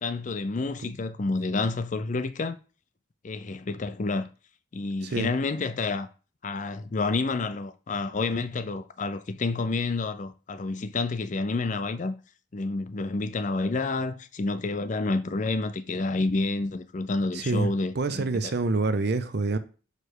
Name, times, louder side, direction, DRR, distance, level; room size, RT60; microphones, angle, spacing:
voice 1, 0.0-2.6 3.2-4.3 4.7-6.1 6.4-12.2 12.5-18.5, left 3 dB, 40° left, 0.5 m, -29 dB
voice 2, 17.3-17.7 17.9-19.6, right 3 dB, 55° right, 0.6 m, -26 dB
6.5 x 3.3 x 4.6 m
head